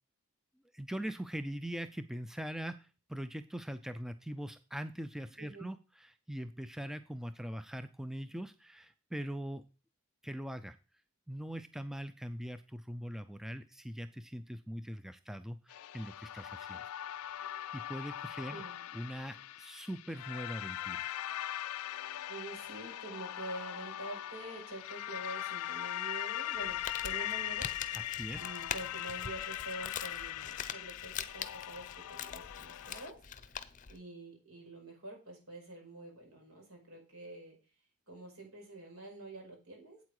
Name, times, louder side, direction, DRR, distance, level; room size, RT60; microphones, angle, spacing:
voice 1, 0.7-9.6 10.2-10.8 11.3-17.0 17.3-18.6 18.9-21.1 27.9-28.4, equal, ahead, 11 dB, 0.4 m, -42 dB
voice 2, 5.4-5.7 18.5-18.8 22.3-27.7 28.4-33.2 33.9-37.6 38.1-40.0, right 2 dB, 75° right, 1 dB, 5.4 m, -47 dB
sound 1, 15.7-33.1, left 12 dB, 85° left, 0.4 m, -40 dB
Crumpling crinkling, 26.6-34.0, left 8 dB, 35° left, 0.6 m, -43 dB
8.4 x 8.2 x 4.8 m, 0.32 s
head